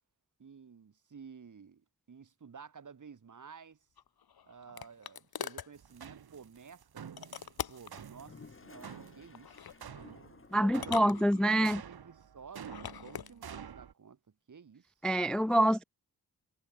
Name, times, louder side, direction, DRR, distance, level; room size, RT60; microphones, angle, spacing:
voice 1, 0.4-3.8 4.4-7.1 7.7-9.7 10.5-14.2 14.5-14.9, right 6 dB, 55° right, 7.8 m, -52 dB
sound 1, 4.0-5.7 7.2-8.0 9.3-9.8 10.7-11.7 12.6-13.3, left 8 dB, 80° left, 3.0 m, -42 dB
sound 2, 5.7-13.9, right 8 dB, 80° right, 4.1 m, -49 dB
Toilet flush, 7.9-11.0, left 4 dB, 35° left, 5.1 m, -55 dB
voice 2, 10.5-11.8 15.0-15.8, right 1 dB, ahead, 0.4 m, -26 dB
wide cardioid pair, 170°, 37 cm